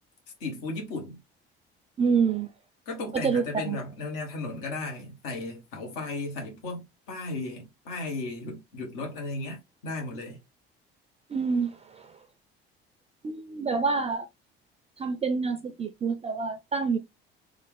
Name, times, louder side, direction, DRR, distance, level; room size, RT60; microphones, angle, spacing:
voice 1, 0.4-1.2 2.9-10.4, left 2 dB, 65° left, 1.3 m, -35 dB
voice 2, 2.0-2.5 3.1-3.8 11.3-12.2 13.2-14.3 15.0-17.0, right 5 dB, 20° right, 0.4 m, -27 dB
3.3 x 2.5 x 3.2 m
figure-of-eight pair, 55°, 29 cm